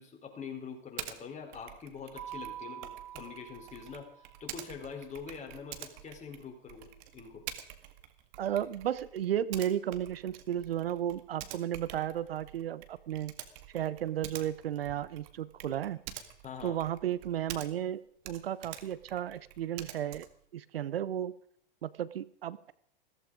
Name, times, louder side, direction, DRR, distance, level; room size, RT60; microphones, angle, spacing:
voice 1, 0.0-7.4 16.4-16.8, left 6 dB, 25° left, 2 dB, 4.6 m, -45 dB
Typing, 1.0-1.2 1.5-17.9 18.2-20.4, right 12 dB, 55° right, 2.0 m, -47 dB
Keyboard (musical), 2.2-4.7, right 10 dB, 15° right, 4.4 m, -46 dB
voice 2, 8.4-13.3 13.7-16.0 16.6-20.3 20.5-21.3 21.8-22.7, right 11 dB, 80° right, 18 dB, 0.8 m, -34 dB
15.5 x 14.5 x 5.1 m, 0.64 s
hypercardioid pair, 100°, 29 cm